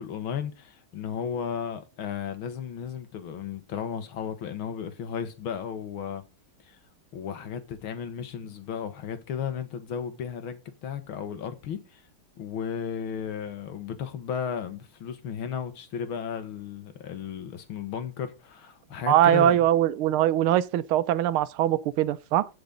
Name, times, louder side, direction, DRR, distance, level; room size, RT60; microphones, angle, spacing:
voice 1, 0.0-6.2 6.7-6.8 7.1-12.0 12.4-19.6, left 7 dB, 75° left, 2.1 m, -34 dB
voice 2, 19.1-22.5, right 12 dB, 85° right, 1.5 m, -22 dB
15.5 x 5.2 x 3.8 m
omnidirectional pair, 2.3 m